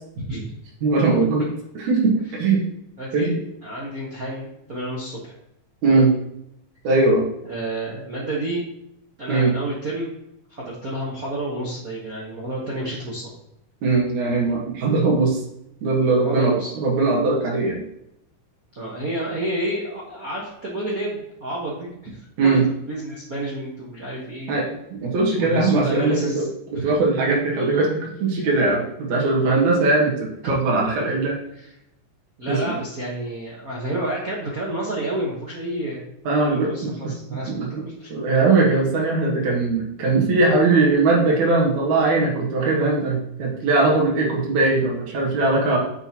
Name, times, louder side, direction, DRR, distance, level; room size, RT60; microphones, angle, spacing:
voice 1, 0.8-1.5 1.8-2.1 2.4-2.6 3.1-3.4 5.8-6.1 6.8-7.2 9.3-9.5 13.8-15.4 15.8-17.8 22.4-22.6 24.5-24.6 24.9-31.4 32.5-32.6 36.3-37.1 37.5-37.8 38.1-45.8, right 3 dB, 70° right, -3 dB, 2.8 m, -20 dB
voice 2, 3.0-3.3 3.6-5.4 5.9-6.1 7.5-8.6 9.2-10.1 10.5-13.3 16.2-16.7 18.7-24.5 25.3-26.5 26.7-26.9 30.4-30.5 31.0-31.1 31.5-31.7 32.4-36.0 36.3-38.1, right 1 dB, 50° right, -5 dB, 1.1 m, -30 dB
9.1 x 5.7 x 2.9 m, 0.80 s
omnidirectional pair, 3.5 m